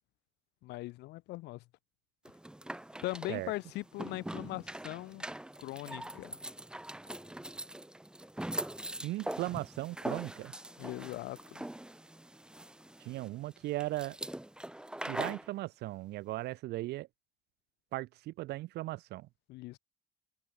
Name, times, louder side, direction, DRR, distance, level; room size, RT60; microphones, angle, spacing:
voice 1, 0.6-1.6 3.0-5.2 5.6-6.4 10.8-11.6 19.5-19.8, left 19 dB, 90° left, 3.6 m, -40 dB
sound 1, 2.2-15.5, right 1 dB, 5° right, 1.0 m, -42 dB
voice 2, 9.0-10.5 13.0-14.2 15.0-17.1 17.9-19.3, right 17 dB, 80° right, 1.5 m, -37 dB
cardioid pair, 110°, 17 cm